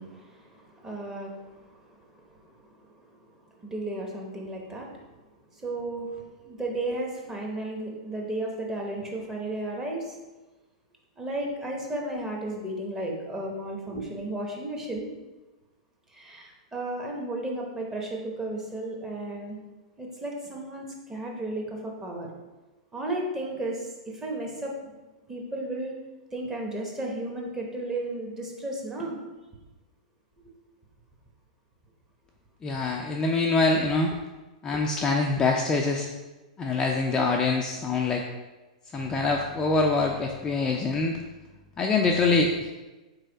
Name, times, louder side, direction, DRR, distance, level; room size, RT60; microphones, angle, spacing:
voice 1, 0.0-5.2 5.5-10.2 11.2-15.1 16.1-19.6 20.0-22.3 22.9-24.9 25.3-25.9 26.3-29.2, right 1 dB, 15° right, -1 dB, 1.0 m, -34 dB
voice 2, 32.6-34.2 34.6-36.1 36.6-38.2 38.9-41.2 41.8-42.7, left 3 dB, 15° left, 0 dB, 0.4 m, -24 dB
4.0 x 3.2 x 3.9 m, 1.1 s
hypercardioid pair, 125°, 4 cm